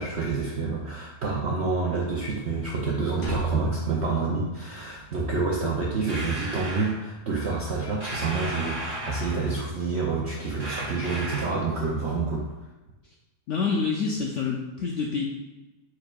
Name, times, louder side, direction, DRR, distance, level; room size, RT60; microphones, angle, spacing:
voice 1, 0.0-12.5, right 4 dB, 70° right, -3 dB, 0.6 m, -28 dB
sound 1, 3.2-5.1, right 3 dB, 55° left, 1.3 m, -32 dB
sound 2, 6.1-7.0 8.0-9.6 10.6-11.7, right 1 dB, 25° right, 1.3 m, -34 dB
voice 2, 13.5-15.3, left 5 dB, 75° left, -2 dB, 0.7 m, -27 dB
4.8 x 4.4 x 2.3 m, 1.1 s
omnidirectional pair, 1.7 m